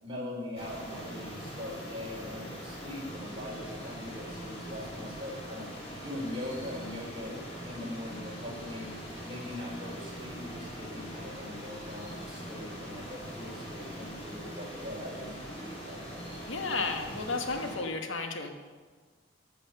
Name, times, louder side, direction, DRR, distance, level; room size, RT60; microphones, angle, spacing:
voice 1, 0.0-5.7 6.0-7.4 7.6-8.9 9.2-16.4, left 1 dB, 25° right, -4 dB, 3.7 m, -41 dB
sound 1, 0.5-17.8, equal, 30° left, 2.9 m, -42 dB
voice 2, 16.5-18.5, left 3 dB, 85° left, 5 dB, 1.3 m, -33 dB
14.0 x 7.5 x 6.5 m, 1.5 s
head